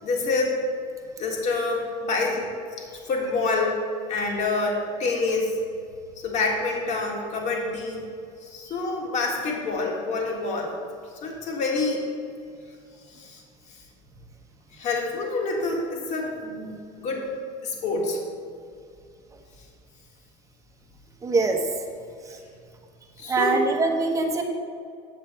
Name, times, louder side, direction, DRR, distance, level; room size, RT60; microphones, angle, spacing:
voice 1, 0.0-0.6 1.2-2.4 3.0-3.8 4.1-5.6 6.2-8.0 8.4-10.8 11.2-12.0 13.1-13.4 13.7-13.8 14.7-16.7 17.0-17.3 17.6-18.2 23.2-23.7, left 3 dB, 45° left, 0 dB, 1.8 m, -27 dB
voice 2, 21.2-21.6 23.3-24.4, right 3 dB, 20° right, 3 dB, 1.0 m, -23 dB
8.7 x 7.3 x 4.4 m, 2.3 s
cardioid pair, 135°, 16 cm